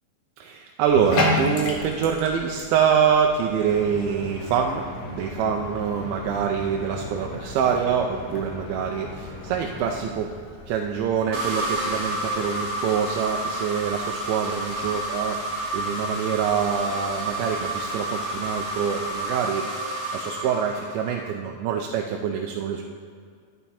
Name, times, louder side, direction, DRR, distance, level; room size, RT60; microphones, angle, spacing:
voice 1, 0.4-10.4 10.7-19.7 20.1-22.8, right 7 dB, 80° right, 2 dB, 2.4 m, -25 dB
Bathtub (filling or washing), 0.9-19.2, left 2 dB, 90° left, 3.3 m, -36 dB
sound 1, 3.7-10.2, left 2 dB, 55° left, 2.5 m, -38 dB
sound 2, 11.3-21.3, right 1 dB, 35° right, 1.8 m, -30 dB
10.5 x 9.3 x 4.2 m, 2.2 s
omnidirectional pair, 4.5 m